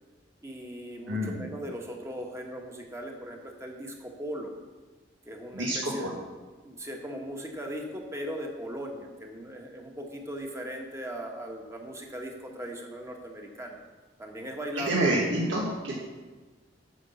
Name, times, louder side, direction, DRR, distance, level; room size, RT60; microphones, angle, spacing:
voice 1, 0.4-4.5 5.2-6.2 6.6-13.8 14.2-15.1, equal, 15° right, 1 dB, 1.4 m, -38 dB
voice 2, 1.1-1.4 5.5-6.1 14.8-16.0, right 1 dB, 85° right, -4 dB, 1.9 m, -28 dB
9.7 x 6.2 x 7.1 m, 1.3 s
head